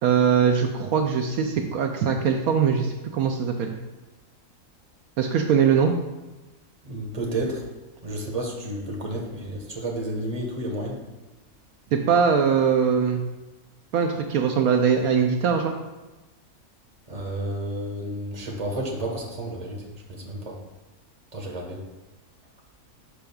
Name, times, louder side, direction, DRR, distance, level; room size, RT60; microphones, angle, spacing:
voice 1, 0.0-3.7 5.2-5.9 11.9-13.2 13.9-15.7, right 6 dB, 75° right, 4 dB, 1.0 m, -21 dB
voice 2, 6.8-7.6 8.0-11.0 17.1-19.8 20.1-20.6 21.3-21.8, right 1 dB, 25° right, 0 dB, 1.2 m, -31 dB
11.5 x 5.1 x 2.3 m, 1.1 s
omnidirectional pair, 1.6 m